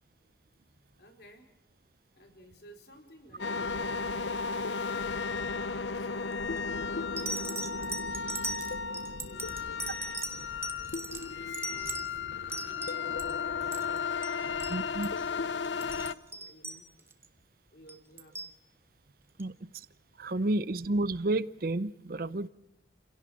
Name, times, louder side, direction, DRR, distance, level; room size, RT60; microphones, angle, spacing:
voice 1, 0.7-1.5 2.1-4.3 5.6-8.0 9.1-10.0 10.4-10.6 10.9-17.4 17.7-18.4, equal, 65° left, 3 dB, 4.4 m, -56 dB
sound 1, 3.4-16.1, left 5 dB, 85° left, 0.7 m, -34 dB
sound 2, 6.3-6.6 7.2-13.3 13.6-14.0 14.2-14.3 14.6-14.8 15.0-15.2 15.6-17.3 17.9-18.5 19.4-19.5, right 2 dB, 15° right, 1.3 m, -39 dB
voice 2, 14.7-15.1 19.4-19.9 20.2-22.5, right 2 dB, 55° right, 16 dB, 0.7 m, -31 dB
29.0 x 17.0 x 6.3 m, 0.92 s
head